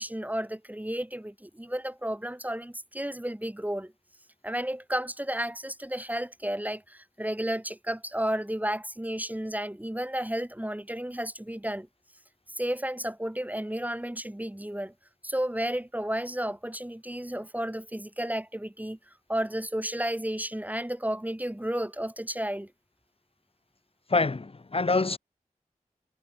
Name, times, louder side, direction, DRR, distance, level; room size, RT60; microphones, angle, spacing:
voice 1, 0.0-3.9 4.4-11.9 12.5-14.9 15.2-19.0 19.3-22.7, right 1 dB, 10° right, 1.3 m, -32 dB
voice 2, 24.1-25.2, left 3 dB, 40° left, 0.8 m, -25 dB
wide cardioid pair, 45°, 14 cm